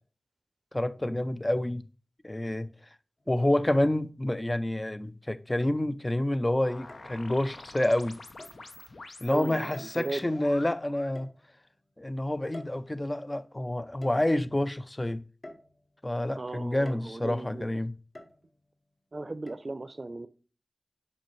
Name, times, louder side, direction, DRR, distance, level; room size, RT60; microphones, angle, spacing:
voice 1, 0.7-1.8 2.2-2.7 3.3-8.2 9.2-11.3 12.0-15.2 16.0-17.9, left 1 dB, 25° left, 0.4 m, -28 dB
sound 1, 3.2-3.3 4.3-4.9 5.6-6.2 6.9-7.2 8.4-8.7 9.7-10.3 11.1-11.8 12.5-13.4 14.0-14.7 15.4-16.2 16.8-17.4 18.1-18.7 19.5-19.6, left 1 dB, 50° left, 1.2 m, -50 dB
sound 2, 6.6-11.2, left 2 dB, 70° left, 0.8 m, -47 dB
voice 2, 9.3-10.2 16.4-17.7 19.1-20.3, right 2 dB, 45° right, 0.6 m, -37 dB
6.9 x 5.2 x 3.1 m
wide cardioid pair, 65°, 0 cm